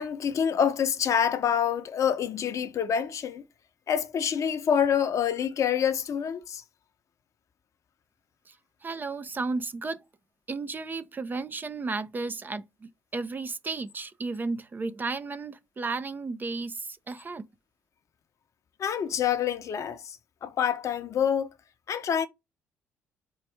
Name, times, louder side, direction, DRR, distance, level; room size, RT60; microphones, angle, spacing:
voice 1, 0.0-3.4 3.9-6.6 18.8-20.2 20.4-21.5 21.9-22.3, left 8 dB, 45° left, 0.7 m, -26 dB
voice 2, 8.8-10.0 10.5-17.4, right 3 dB, 25° right, 0.5 m, -33 dB
4.6 x 2.4 x 3.4 m
figure-of-eight pair, 45°, 7 cm